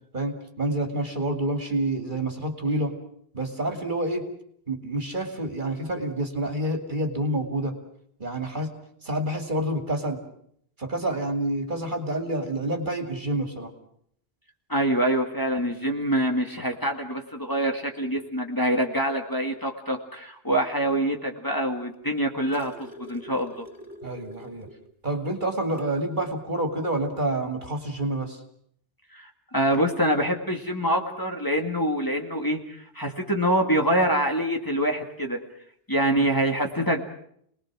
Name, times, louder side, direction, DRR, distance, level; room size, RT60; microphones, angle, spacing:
voice 1, 0.1-2.9 3.3-4.3 4.7-7.7 8.2-8.7 9.0-10.2 10.8-13.7 24.0-24.7 25.0-28.4 36.2-36.3, right 1 dB, 50° right, 5 dB, 2.7 m, -28 dB
voice 2, 14.7-23.7 29.1-35.4 35.9-37.0, right 1 dB, 20° left, 2 dB, 2.2 m, -25 dB
sound 1, 21.9-24.9 25.3-25.4 25.7-26.0 27.1-27.2, equal, 30° right, 4.3 m, -45 dB
29.0 x 20.0 x 6.2 m, 0.68 s
omnidirectional pair, 1.1 m